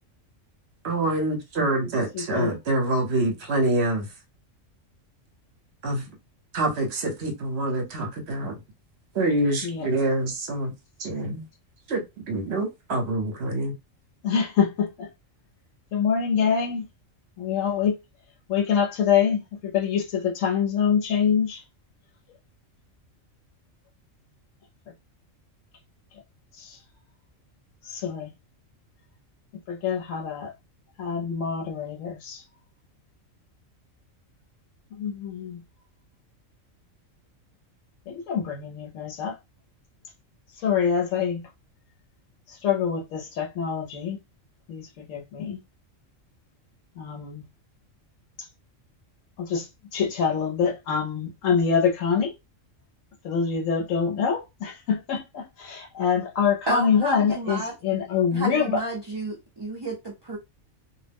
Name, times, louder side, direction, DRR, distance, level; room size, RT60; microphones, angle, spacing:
voice 1, 0.8-4.1 5.8-6.1 6.5-8.6 9.1-10.7 11.0-11.4 11.9-13.7, right 2 dB, 60° right, 1.0 m, -26 dB
voice 2, 2.1-2.5 9.6-9.9 14.2-15.1 15.9-16.9 17.4-18.0 18.5-21.6 26.6-26.8 27.8-28.3 29.7-30.5 31.0-32.4 34.9-35.6 38.1-39.4 40.6-41.4 42.5-44.2 44.7-45.6 47.0-47.4 49.4-52.3 53.2-58.8, left 7 dB, 80° left, 1.0 m, -25 dB
voice 3, 56.7-57.7 58.3-60.4, right 2 dB, 30° right, 0.5 m, -31 dB
2.4 x 2.0 x 3.3 m
omnidirectional pair, 1.3 m